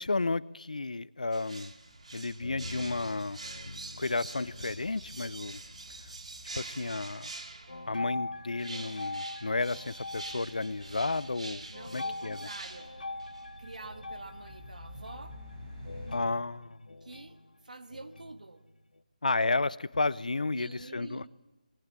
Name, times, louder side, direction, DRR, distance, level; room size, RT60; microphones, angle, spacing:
voice 1, 0.0-1.7 2.1-3.4 4.0-5.6 6.5-7.3 7.9-12.5 16.1-16.9 19.2-21.2, left 3 dB, 65° left, 20 dB, 0.7 m, -32 dB
sound 1, 1.3-7.9 8.6-13.4 13.7-13.8, right 3 dB, 50° right, 2.0 m, -46 dB
sound 2, 1.7-16.2, equal, 20° right, 4.1 m, -52 dB
sound 3, 2.4-6.2 6.5-7.2 7.7-19.0, left 2 dB, 85° left, 1.3 m, -44 dB
voice 2, 11.7-13.0 13.6-15.4 17.0-18.6 20.5-21.3, right 2 dB, 70° right, 10 dB, 1.6 m, -47 dB
21.5 x 17.5 x 8.3 m, 1.1 s
figure-of-eight pair, 180°, 4 cm